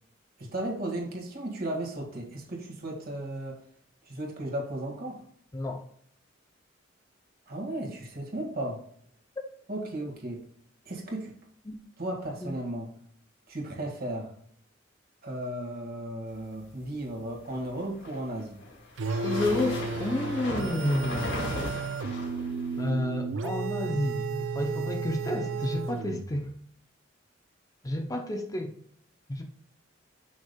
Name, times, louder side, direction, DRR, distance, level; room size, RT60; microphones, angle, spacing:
voice 1, 0.4-3.6 4.1-5.2 7.5-8.8 9.7-10.5 10.9-11.3 12.0-12.9 13.5-14.3 15.2-18.6 21.3-21.6, right 1 dB, 50° right, 1.8 m, -35 dB
sound 1, 17.8-22.9, left 2 dB, 60° left, 2.1 m, -37 dB
sound 2, 19.0-26.4, right 4 dB, 70° right, 0.5 m, -33 dB
voice 2, 19.2-21.8 22.8-26.5 27.8-28.7 29.3-29.5, left 1 dB, 20° left, 0.6 m, -30 dB
7.0 x 6.2 x 2.2 m
head